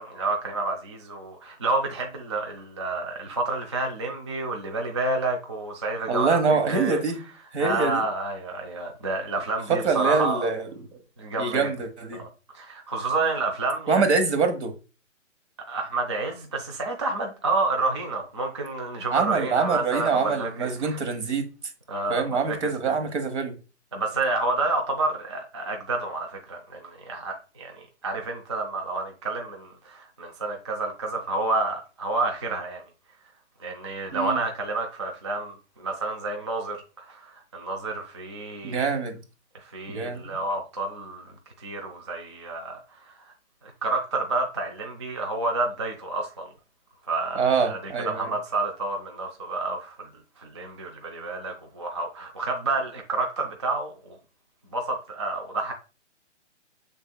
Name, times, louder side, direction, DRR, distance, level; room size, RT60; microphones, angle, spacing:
voice 1, 0.0-7.0 7.6-10.5 11.2-11.7 12.1-12.3 12.5-14.0 15.7-21.0 21.9-23.0 23.9-32.8 33.6-38.9 39.6-43.3 43.6-46.5 47.1-47.8 48.0-50.1 50.4-54.2 54.7-55.7, right 3 dB, 25° right, 0.3 m, -29 dB
voice 2, 6.1-7.2 7.5-8.0 9.7-10.7 11.4-12.2 13.9-14.8 19.1-21.5 22.1-23.6 34.1-34.4 38.6-39.2 39.9-40.4 47.3-48.3, right 4 dB, 65° right, 1.2 m, -25 dB
6.5 x 3.5 x 2.2 m
hypercardioid pair, 150°, 36 cm